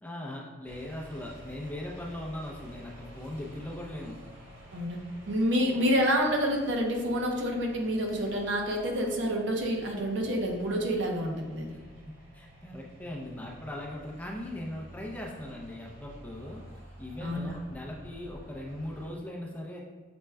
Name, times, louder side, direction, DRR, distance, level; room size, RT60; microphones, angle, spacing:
voice 1, 0.0-4.2 12.1-16.6 17.0-19.8, left 1 dB, 10° left, -2 dB, 0.4 m, -39 dB
sound 1, 0.6-19.1, equal, 90° right, 1.4 m, -51 dB
voice 2, 5.3-11.7 17.2-17.5, equal, 70° right, 1 dB, 0.7 m, -28 dB
6.0 x 2.2 x 3.3 m, 1.3 s
head